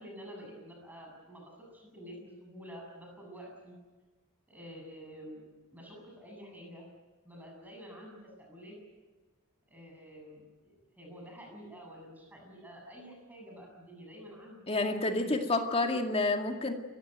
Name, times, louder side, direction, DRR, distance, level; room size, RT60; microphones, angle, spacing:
voice 1, 0.0-3.8 4.5-5.4 5.7-6.9 7.2-8.8 9.7-14.9 15.2-15.5, equal, 10° right, 0 dB, 7.7 m, -49 dB
voice 2, 14.7-16.7, left 2 dB, 25° left, 4 dB, 2.1 m, -29 dB
28.0 x 15.5 x 9.2 m, 1.3 s
head